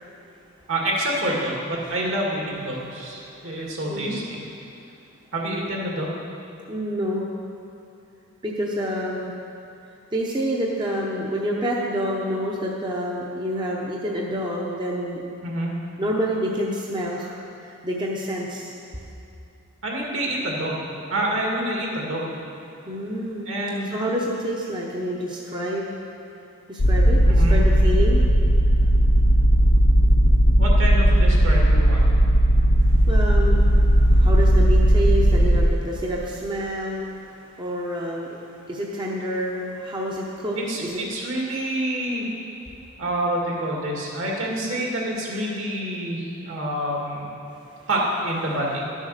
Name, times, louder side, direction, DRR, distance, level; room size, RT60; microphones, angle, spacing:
voice 1, 0.7-4.4 5.3-6.2 15.4-15.7 19.8-20.8 21.1-22.3 23.5-23.9 27.3-27.6 30.6-32.0 40.5-42.3 43.0-47.3 47.9-48.8, right 1 dB, 65° right, -3 dB, 2.3 m, -27 dB
voice 2, 3.2-4.2 6.7-7.3 8.4-9.3 10.1-15.2 16.0-17.4 17.6-18.7 22.8-23.5 23.9-25.9 26.7-28.2 32.8-37.2 37.6-38.4 38.7-41.0, equal, 20° right, -3 dB, 0.9 m, -28 dB
sound 1, 26.8-35.7, equal, 75° left, 0.8 m, -16 dB
12.0 x 7.3 x 6.6 m, 2.6 s
head